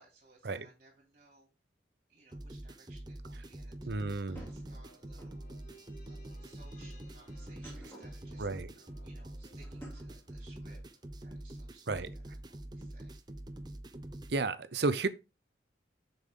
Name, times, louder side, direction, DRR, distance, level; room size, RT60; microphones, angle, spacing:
voice 1, 0.0-1.5 2.1-5.4 6.0-8.5 9.0-10.8 11.2-13.2, right 3 dB, 45° right, 3.4 m, -62 dB
sound 1, 2.2-2.3 4.3-5.4 7.4-8.2 9.6-10.2, right 1 dB, 10° left, 2.8 m, -52 dB
sound 2, 2.3-14.3, right 1 dB, 20° right, 0.7 m, -45 dB
voice 2, 3.8-4.4 8.4-8.7 11.9-12.1 14.3-15.1, right 3 dB, 60° right, 0.7 m, -32 dB
sound 3, 4.7-11.3 11.6-11.7, right 1 dB, 40° left, 2.3 m, -61 dB
7.1 x 7.0 x 3.7 m
head